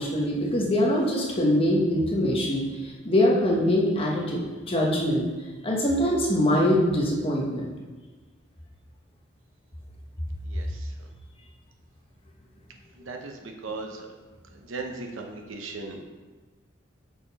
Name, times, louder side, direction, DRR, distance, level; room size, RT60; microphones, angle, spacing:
voice 1, 0.0-5.3 5.6-7.7, left 1 dB, 30° left, -2 dB, 1.0 m, -23 dB
voice 2, 10.5-10.9 13.1-14.1 14.6-16.0, right 3 dB, 80° right, 3 dB, 0.8 m, -37 dB
5.9 x 4.3 x 4.1 m, 1.3 s
head